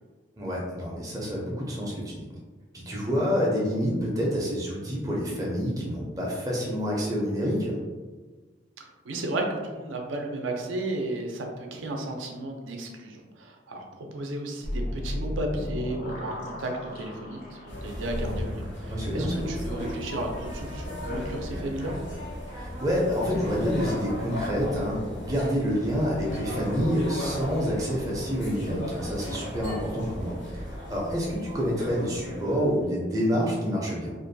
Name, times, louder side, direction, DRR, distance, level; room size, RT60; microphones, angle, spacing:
voice 1, 0.4-2.3 2.7-7.8 18.9-19.4 22.6-34.1, equal, 20° right, -4 dB, 0.4 m, -28 dB
voice 2, 9.0-22.0, right 1 dB, 80° right, 2 dB, 0.4 m, -34 dB
sound 1, 14.6-22.2, left 1 dB, 45° left, 0.4 m, -37 dB
sound 2, 17.7-32.8, equal, 80° left, 1.3 m, -35 dB
2.5 x 2.2 x 2.6 m, 1.3 s
head